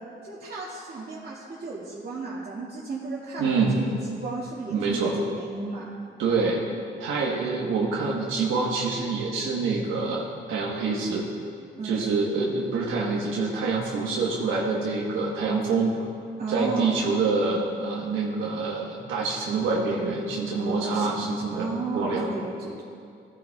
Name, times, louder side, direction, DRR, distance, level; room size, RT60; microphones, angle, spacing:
voice 1, 0.2-5.9 7.4-7.6 11.8-12.0 16.4-17.0 20.6-22.8, right 3 dB, 50° right, -8 dB, 2.1 m, -34 dB
voice 2, 3.4-3.8 4.7-5.1 6.2-6.6 7.0-11.2 11.8-15.9 16.5-22.3, right 4 dB, 90° right, -3 dB, 1.2 m, -26 dB
16.0 x 9.9 x 2.4 m, 2.4 s
cardioid pair, 90°, 20 cm